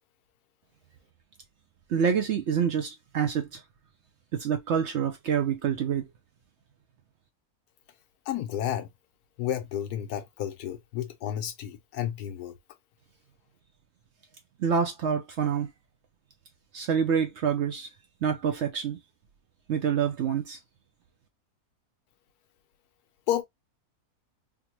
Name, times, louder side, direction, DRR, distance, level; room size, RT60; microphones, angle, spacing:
voice 1, 1.9-3.6 4.3-6.0 14.6-15.7 16.7-17.9 18.2-19.0 19.7-20.6, right 7 dB, 65° right, 0.7 m, -27 dB
voice 2, 8.3-8.9 9.4-12.5 23.3-23.4, left 11 dB, 85° left, 1.2 m, -31 dB
3.5 x 2.1 x 3.0 m
omnidirectional pair, 1.6 m